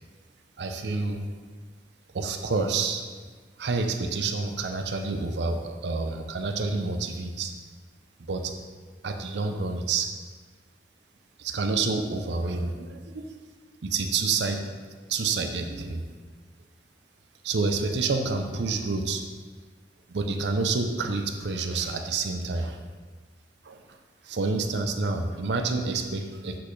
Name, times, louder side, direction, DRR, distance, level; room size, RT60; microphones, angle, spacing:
voice 1, 0.6-1.3 2.1-3.0 3.6-7.5 8.2-8.5 9.0-10.1 11.4-13.4 13.8-14.7 15.1-16.0 17.4-19.2 20.1-22.8 23.6-24.0 24.2-26.6, right 3 dB, 85° right, 6 dB, 0.5 m, -28 dB
7.7 x 4.2 x 3.2 m, 1.5 s
head